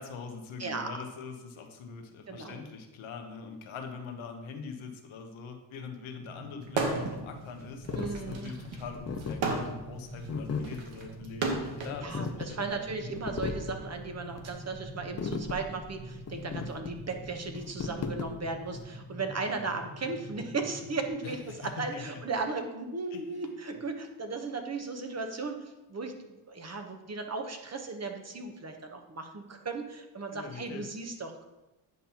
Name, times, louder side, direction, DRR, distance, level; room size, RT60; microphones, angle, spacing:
voice 1, 0.0-13.1 21.2-22.2 23.1-23.5 30.3-30.9, left 5 dB, 85° left, 4 dB, 1.1 m, -43 dB
voice 2, 0.6-0.9 2.3-2.6 7.9-8.5 12.0-31.4, right 3 dB, 35° right, 5 dB, 1.0 m, -36 dB
sound 1, 6.2-21.1, equal, 50° right, 1.9 m, -46 dB
sound 2, 6.7-7.2 7.6-12.0 12.9-14.5, right 3 dB, 80° right, 1.3 m, -34 dB
sound 3, 7.9-18.8, left 4 dB, 35° left, 0.6 m, -37 dB
9.1 x 5.4 x 2.9 m, 1.0 s
cardioid pair, 80°, 46 cm